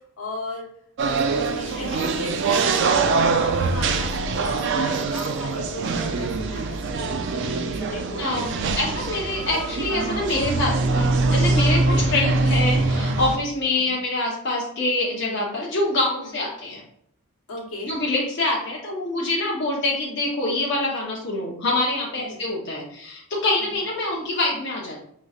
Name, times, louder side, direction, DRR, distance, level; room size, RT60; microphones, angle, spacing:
voice 1, 0.2-0.7 1.0-3.0 3.4-8.7 8.9-9.0 11.7-11.9 13.7-14.0 16.2-16.4 17.5-17.9 22.1-22.4 23.7-23.8, left 2 dB, 80° left, -1 dB, 1.3 m, -36 dB
sound 1, 1.0-13.4, right 3 dB, 55° right, 0.4 m, -23 dB
voice 2, 8.2-8.5 8.8-16.8 17.8-25.0, left 2 dB, 50° left, -4 dB, 0.8 m, -25 dB
5.3 x 3.1 x 2.4 m, 0.70 s
head